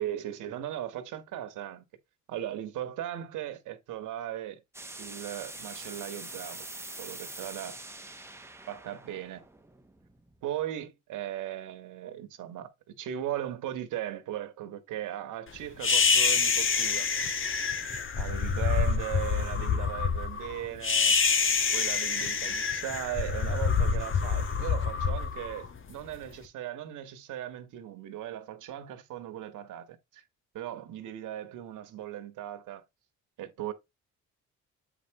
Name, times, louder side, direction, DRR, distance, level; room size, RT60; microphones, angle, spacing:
voice 1, 0.0-1.8 2.3-4.6 5.0-6.7 7.0-7.8 8.7-9.4 10.4-17.1 18.2-21.1 21.7-30.2 30.5-32.8 33.4-33.7, right 12 dB, 85° right, 1.6 m, -38 dB
sound 1, 4.7-10.4, right 2 dB, 10° right, 1.2 m, -44 dB
sound 2, 15.8-26.2, left 5 dB, 40° left, 1.5 m, -27 dB
8.1 x 5.1 x 3.1 m
cardioid pair, 90°, 30 cm